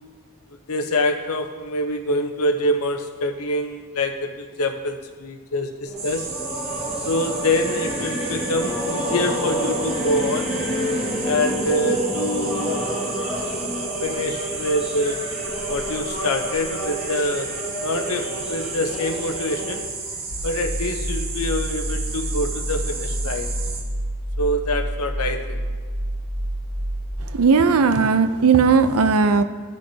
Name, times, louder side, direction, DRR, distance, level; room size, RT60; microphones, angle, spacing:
voice 1, 0.7-6.3 7.0-10.5 11.2-12.9 14.0-15.2 15.7-17.5 17.8-19.9 20.4-23.5 24.4-25.6, left 1 dB, 80° left, 6 dB, 0.9 m, -25 dB
sound 1, 5.8-19.8, equal, 5° right, 1.9 m, -28 dB
sound 2, 6.0-23.8, right 4 dB, 45° right, 1.3 m, -33 dB
sound 3, 20.3-27.1, right 1 dB, 60° left, 1.6 m, -28 dB
voice 2, 27.3-29.4, right 5 dB, 80° right, 10 dB, 0.6 m, -17 dB
16.5 x 6.5 x 2.8 m, 1.5 s
head